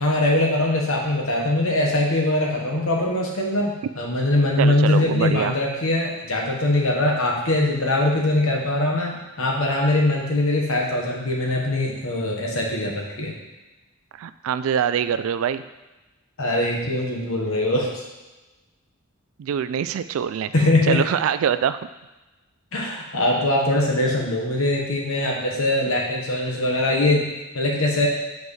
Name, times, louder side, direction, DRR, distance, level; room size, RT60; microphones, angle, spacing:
voice 1, 0.0-13.4 16.4-18.0 20.5-21.0 22.7-27.3 27.5-28.1, left 1 dB, 70° left, -1 dB, 1.3 m, -22 dB
voice 2, 4.6-5.5 14.1-15.6 19.4-21.8, right 8 dB, 65° right, 14 dB, 0.3 m, -24 dB
7.5 x 4.7 x 3.2 m, 1.1 s
head